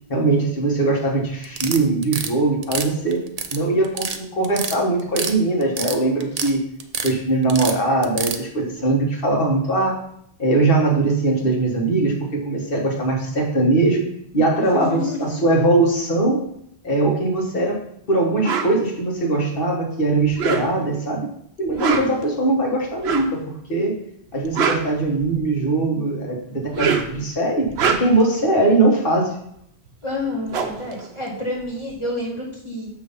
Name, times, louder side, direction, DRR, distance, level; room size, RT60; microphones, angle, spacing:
voice 1, 0.1-3.2 3.5-6.6 7.0-10.0 10.4-14.0 14.3-16.4 16.8-17.8 18.1-21.3 21.6-24.0 24.3-29.3, right 2 dB, 55° left, -1 dB, 1.7 m, -21 dB
sound 1, 1.4-2.3 2.6-3.6 3.8-4.2 4.4-5.3 5.6-6.5 6.8-7.1 7.5-8.4, right 6 dB, 50° right, 0.5 m, -27 dB
voice 2, 14.7-15.4 21.7-22.2 30.0-32.9, left 2 dB, 25° left, -5 dB, 1.8 m, -29 dB
sound 2, 18.4-18.7 20.2-21.0 21.7-22.2 23.0-23.4 24.3-25.6 26.6-27.2 27.6-28.3 29.9-30.0 30.2-31.9, right 6 dB, 80° right, 1.0 m, -25 dB
7.1 x 3.2 x 5.4 m, 0.70 s
omnidirectional pair, 1.1 m